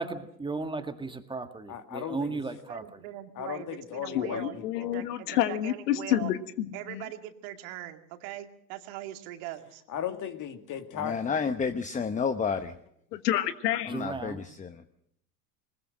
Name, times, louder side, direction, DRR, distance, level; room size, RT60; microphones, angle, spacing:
voice 1, 0.0-2.8 13.9-14.4, right 3 dB, 10° right, 7 dB, 2.0 m, -35 dB
voice 2, 1.7-2.4 3.4-5.0 9.9-11.2, left 9 dB, 40° left, 8 dB, 2.3 m, -36 dB
voice 3, 2.5-6.3 6.7-9.8, right 13 dB, 60° right, 7 dB, 2.3 m, -41 dB
voice 4, 4.1-7.0 13.1-13.9, left 12 dB, 75° left, 12 dB, 1.5 m, -29 dB
voice 5, 11.0-12.7 13.9-14.8, left 5 dB, 15° left, 10 dB, 0.9 m, -30 dB
20.5 x 20.5 x 6.5 m, 0.70 s
hypercardioid pair, 95°, 48 cm